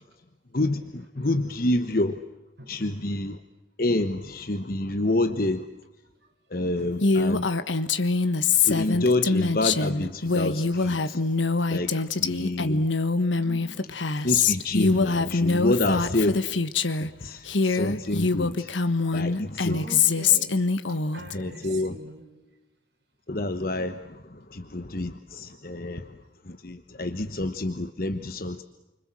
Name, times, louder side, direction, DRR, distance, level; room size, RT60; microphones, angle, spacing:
voice 1, 0.5-2.2 2.7-3.4 3.8-5.6 6.5-7.5 8.6-11.2 11.7-12.9 14.2-16.5 17.0-18.7 19.1-19.8 21.1-22.0 23.3-26.1 26.4-28.6, left 2 dB, 50° left, 9 dB, 1.1 m, -28 dB
voice 2, 2.6-2.9 13.3-14.0 19.7-22.2, right 1 dB, 60° right, 2 dB, 6.6 m, -43 dB
Female speech woman speaking, 7.0-17.1 17.5-21.3, left 4 dB, 80° left, 1.4 m, -24 dB
29.5 x 25.5 x 7.7 m, 1.0 s
head